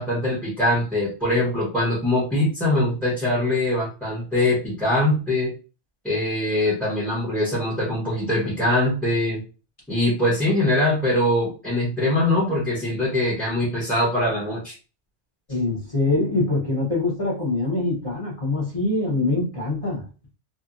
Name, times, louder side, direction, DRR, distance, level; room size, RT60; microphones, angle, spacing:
voice 1, 0.0-5.5 6.0-9.4 9.9-14.7, left 1 dB, ahead, -7 dB, 1.0 m, -22 dB
voice 2, 15.5-20.0, left 2 dB, 30° left, -6 dB, 1.0 m, -24 dB
2.8 x 2.4 x 2.5 m, 0.33 s
omnidirectional pair, 1.3 m